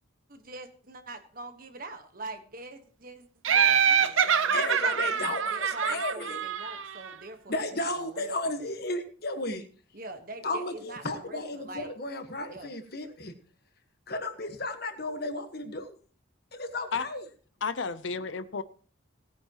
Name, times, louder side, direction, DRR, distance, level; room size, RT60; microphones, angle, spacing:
voice 1, 0.3-8.3 9.9-11.9 12.5-12.7, right 2 dB, 45° right, 1.4 m, -44 dB
Laughter, 3.4-7.1, right 7 dB, 80° right, 0.8 m, -25 dB
voice 2, 4.5-6.4 7.5-9.6 10.4-13.3 14.1-15.9 16.5-17.2, left 2 dB, 50° left, 1.4 m, -34 dB
voice 3, 17.6-18.6, left 5 dB, 70° left, 0.6 m, -32 dB
18.0 x 9.3 x 3.0 m
head